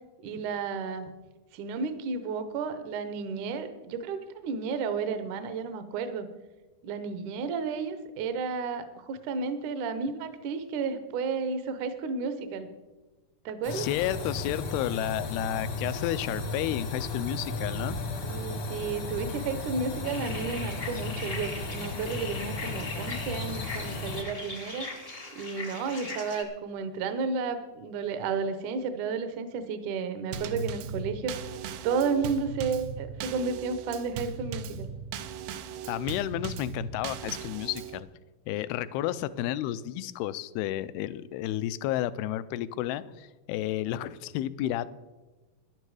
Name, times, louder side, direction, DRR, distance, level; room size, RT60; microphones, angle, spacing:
voice 1, 0.2-1.1 1.5-6.3 6.8-12.7 13.5-13.9 18.2-24.9 25.4-31.4 31.8-34.9, right 5 dB, 70° right, 10 dB, 2.0 m, -32 dB
sound 1, 13.6-24.2, left 3 dB, 60° left, 1.3 m, -35 dB
voice 2, 13.7-18.0 35.9-38.1 38.5-44.9, left 13 dB, 85° left, 16 dB, 2.5 m, -31 dB
sound 2, 20.0-26.4, left 3 dB, 40° left, 0.8 m, -40 dB
Drum kit / Snare drum / Bass drum, 30.3-38.0, right 5 dB, 85° right, 2.7 m, -38 dB
14.0 x 10.5 x 4.8 m, 1.2 s
omnidirectional pair, 4.5 m